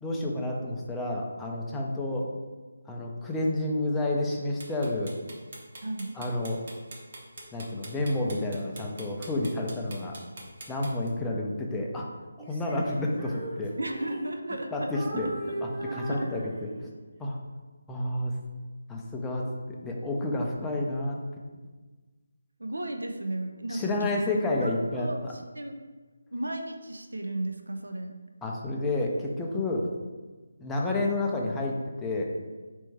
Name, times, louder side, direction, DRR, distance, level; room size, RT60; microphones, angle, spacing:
voice 1, 0.0-2.3 2.9-5.1 6.1-6.6 7.5-10.2 10.7-12.1 12.4-13.7 14.7-15.3 15.6-16.9 17.2-17.4 17.9-18.3 18.9-21.2 23.7-25.3 28.4-29.9 30.6-32.2, left 2 dB, 5° left, -2 dB, 0.5 m, -30 dB
sound 1, 4.6-11.1, right 2 dB, 50° right, 1.0 m, -44 dB
voice 2, 5.8-6.2 13.8-16.3 22.6-24.1 24.6-25.8 26.3-28.1, right 1 dB, 80° right, 4 dB, 0.5 m, -35 dB
Female singing, 12.4-14.6 14.9-17.0, right 2 dB, 25° right, 0.9 m, -39 dB
4.2 x 3.5 x 3.2 m, 1.3 s
figure-of-eight pair, 155°, 0 cm